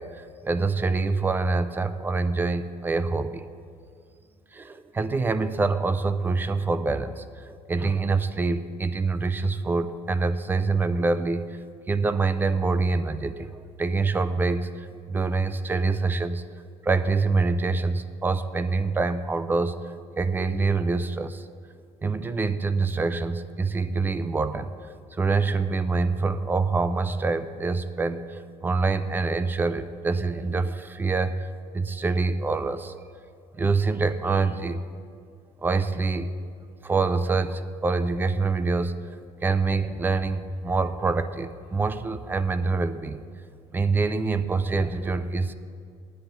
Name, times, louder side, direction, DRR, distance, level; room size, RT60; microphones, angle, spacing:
voice 1, 0.0-3.5 4.5-11.6 11.9-13.5 13.8-16.4 16.8-21.5 22.0-24.7 25.2-31.5 31.7-32.9 33.5-34.8 35.6-36.3 36.8-43.2 43.7-45.5, right 3 dB, 15° right, 13 dB, 0.4 m, -25 dB
8.8 x 7.8 x 9.1 m, 2.3 s
cardioid pair, 155°, 12 cm